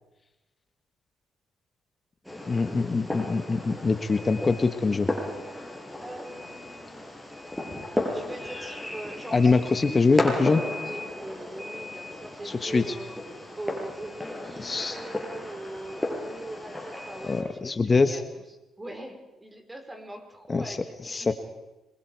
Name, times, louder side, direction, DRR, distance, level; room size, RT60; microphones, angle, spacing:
Fireworks, 2.2-17.4, left 1 dB, ahead, 6.6 m, -35 dB
voice 1, 2.5-5.1 9.3-10.6 12.4-12.8 14.6-15.0 17.2-18.2 20.5-20.8 21.0-21.3, left 4 dB, 35° left, 8 dB, 1.3 m, -24 dB
voice 2, 6.0-7.1 8.1-10.0 10.7-13.2 13.6-18.2 18.8-21.3, right 1 dB, 15° right, 4 dB, 4.8 m, -41 dB
27.5 x 23.0 x 4.7 m, 1.1 s
supercardioid pair, 65°, 0 cm